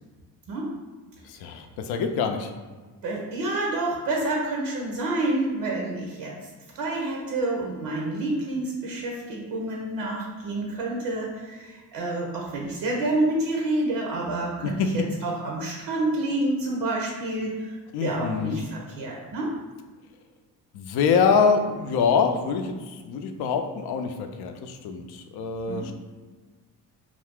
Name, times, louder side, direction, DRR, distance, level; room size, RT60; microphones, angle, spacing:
voice 1, 1.2-2.5 14.6-15.1 17.9-18.6 20.7-25.9, left 5 dB, 60° left, 6 dB, 0.5 m, -25 dB
voice 2, 3.0-6.5 6.7-17.7 18.0-19.5 25.7-25.9, right 2 dB, 70° right, -1 dB, 0.7 m, -28 dB
2.5 x 2.4 x 3.5 m, 1.4 s
hypercardioid pair, 50°, 43 cm